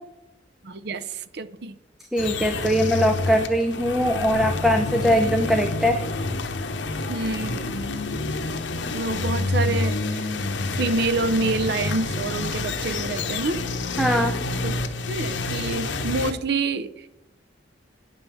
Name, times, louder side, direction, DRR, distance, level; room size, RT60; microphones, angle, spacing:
voice 1, 0.6-1.8 7.1-7.7 8.9-10.3 10.8-13.7 14.6-14.7 15.1-17.1, right 3 dB, 60° right, 13 dB, 0.6 m, -27 dB
voice 2, 2.1-6.0 14.0-14.4, equal, ahead, 4 dB, 0.6 m, -21 dB
sound 1, 2.2-16.3, left 3 dB, 75° left, 1.0 m, -28 dB
10.0 x 5.5 x 7.1 m, 0.89 s
head